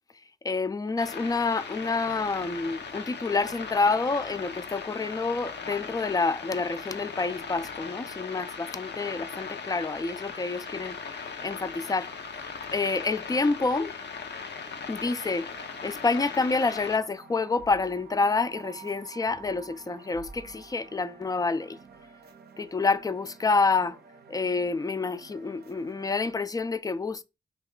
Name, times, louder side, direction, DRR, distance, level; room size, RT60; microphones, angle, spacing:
voice 1, 0.4-12.5 12.7-14.0 14.9-21.8 22.6-24.0 24.3-27.2, left 4 dB, 20° left, 0.3 m, -28 dB
sound 1, 1.0-17.0, left 5 dB, 65° left, 0.6 m, -39 dB
sound 2, 15.5-26.4, right 6 dB, 60° right, 0.5 m, -50 dB
2.9 x 2.4 x 3.6 m
cardioid pair, 55°, 19 cm